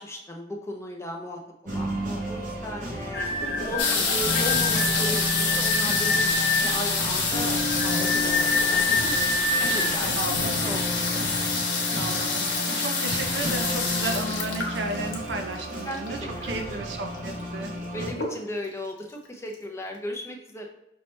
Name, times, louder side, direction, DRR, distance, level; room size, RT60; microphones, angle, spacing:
voice 1, 0.0-3.3 3.7-6.3 6.6-7.9 8.2-9.4 9.7-11.3 15.8-16.9 17.9-20.7, equal, 15° left, 1 dB, 0.6 m, -36 dB
sound 1, 1.6-18.1, equal, 45° right, 1.0 m, -33 dB
sound 2, 3.1-10.2, left 3 dB, 60° left, 0.8 m, -28 dB
sound 3, 3.8-16.3 17.1-17.2 17.4-17.8 18.1-18.7 19.3-19.4 19.5-19.6, left 4 dB, 80° left, 1.0 m, -27 dB
voice 2, 9.5-10.7 12.0-17.7, right 2 dB, 75° right, 4 dB, 0.7 m, -34 dB
5.4 x 2.9 x 3.2 m, 0.87 s
head